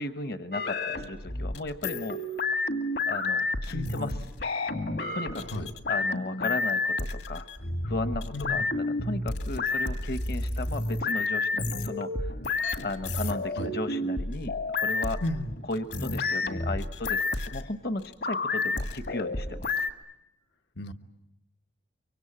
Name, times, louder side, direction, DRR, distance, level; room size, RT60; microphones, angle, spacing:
voice 1, 0.0-2.2 3.1-4.1 5.1-7.4 7.8-12.3 12.8-15.2 15.7-19.9, left 2 dB, 55° left, 11 dB, 1.0 m, -35 dB
sound 1, 0.5-19.9, left 3 dB, 75° left, 2.2 m, -30 dB
voice 2, 8.3-8.6 13.6-13.7 15.2-15.5 20.8-20.9, left 1 dB, 90° left, 5 dB, 1.4 m, -33 dB
25.5 x 24.0 x 8.7 m, 0.88 s
head